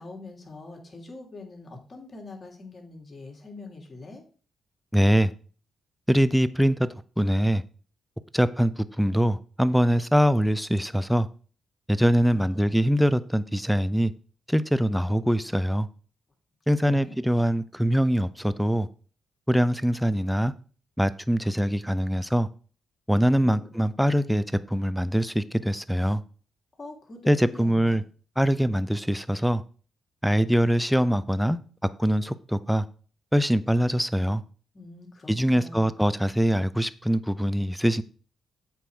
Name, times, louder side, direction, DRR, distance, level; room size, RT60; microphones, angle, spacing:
voice 1, 0.0-4.3 12.3-12.7 16.7-17.2 23.4-23.7 26.8-28.0 34.7-35.8, left 2 dB, 35° left, 3.0 m, -43 dB
voice 2, 4.9-5.3 6.1-6.9 7.2-7.6 8.3-11.3 11.9-14.1 14.5-15.9 16.7-18.9 19.5-20.5 21.0-22.5 23.1-26.2 27.3-28.0 28.4-29.6 30.2-31.6 32.0-32.8 33.3-34.4 35.3-38.0, equal, ahead, 0.6 m, -23 dB
8.1 x 4.7 x 6.2 m
cardioid pair, 70°, 0 cm